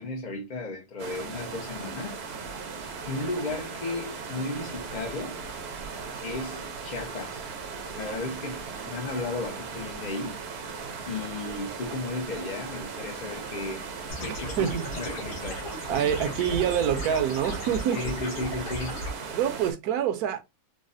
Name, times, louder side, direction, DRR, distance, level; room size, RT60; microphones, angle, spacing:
voice 1, 0.0-2.2 3.1-5.4 6.2-7.4 7.9-10.4 11.1-13.9 14.2-14.7 15.0-15.7 17.9-19.0, left 2 dB, 65° left, 0.4 m, -34 dB
sound 1, 1.0-19.7, right 5 dB, 55° right, 0.7 m, -38 dB
sound 2, 14.1-19.1, equal, 85° left, 1.8 m, -36 dB
voice 2, 14.3-14.9 15.9-18.0 19.3-20.4, right 9 dB, 75° right, 1.1 m, -26 dB
4.0 x 2.0 x 2.5 m
omnidirectional pair, 1.7 m